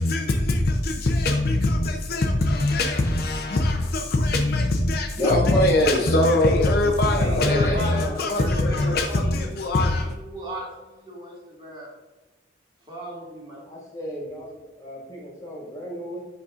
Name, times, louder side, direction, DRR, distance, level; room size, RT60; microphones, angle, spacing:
voice 1, 0.0-10.2, left 2 dB, 55° left, 3 dB, 0.6 m, -22 dB
voice 2, 5.2-6.7 7.2-8.2 8.6-9.0 13.7-16.2, equal, 20° left, -4 dB, 1.7 m, -29 dB
voice 3, 7.2-11.9 12.9-13.7, equal, 25° right, -4 dB, 2.0 m, -35 dB
8.6 x 5.3 x 2.5 m, 1.2 s
head